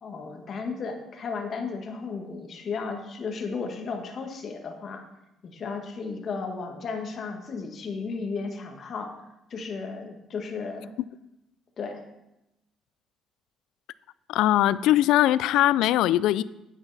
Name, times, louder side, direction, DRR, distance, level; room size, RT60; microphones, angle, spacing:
voice 1, 0.0-5.0 5.4-9.1 9.5-10.9 11.8-12.0, left 4 dB, 35° left, 4 dB, 1.5 m, -34 dB
voice 2, 14.3-16.4, left 13 dB, 75° left, 18 dB, 0.3 m, -21 dB
9.8 x 9.0 x 4.1 m, 0.90 s
cardioid pair, 170°, 0 cm